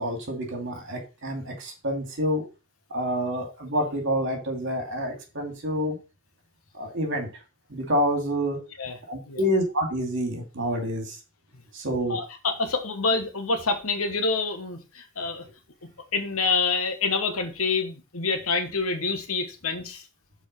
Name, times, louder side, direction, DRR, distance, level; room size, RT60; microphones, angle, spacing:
voice 1, 0.0-2.4 2.9-6.0 6.7-7.3 7.7-8.6 9.1-11.2 11.7-12.2, equal, 55° right, 2.5 m, -28 dB
voice 2, 12.1-15.4 16.1-20.0, left 4 dB, 75° left, 1.3 m, -27 dB
6.4 x 4.5 x 5.5 m
head